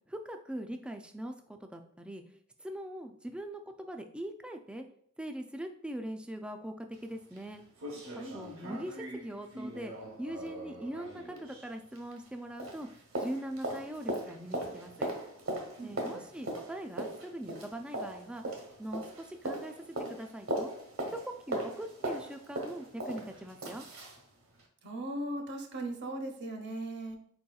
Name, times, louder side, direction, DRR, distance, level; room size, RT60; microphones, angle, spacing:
voice 1, 0.1-2.2 2.6-4.9 5.2-7.6 8.3-9.9 10.2-12.9 13.2-15.1 15.8-18.4 18.8-19.7 20.1-20.7 21.1-23.9, right 1 dB, 5° right, 5 dB, 0.3 m, -41 dB
sound 1, 6.9-7.0 7.4-7.5 7.8-12.3 12.6-24.2 24.6-24.7, right 1 dB, 75° right, 1.0 m, -39 dB
voice 2, 15.8-16.2 24.8-27.2, right 1 dB, 55° right, 3 dB, 0.7 m, -38 dB
4.5 x 4.1 x 2.3 m, 0.64 s
head